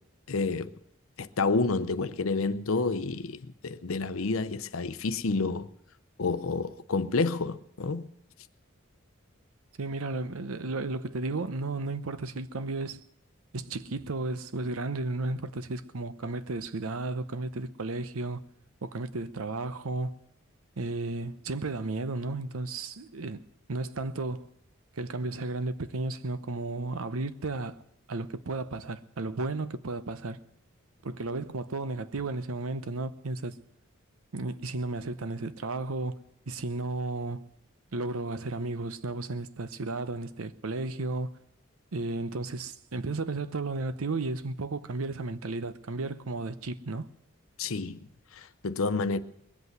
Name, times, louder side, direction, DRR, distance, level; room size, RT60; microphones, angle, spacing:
voice 1, 0.3-0.7 1.2-5.7 6.2-8.1 47.6-48.1 48.3-49.2, left 3 dB, 75° left, 0.7 m, -29 dB
voice 2, 9.8-13.0 13.5-18.4 18.8-20.2 20.8-23.4 23.7-24.5 24.9-27.8 28.1-30.4 31.0-33.6 34.3-37.4 37.9-41.4 41.9-47.1, right 2 dB, 85° right, 0.8 m, -33 dB
21.0 x 8.2 x 7.9 m
head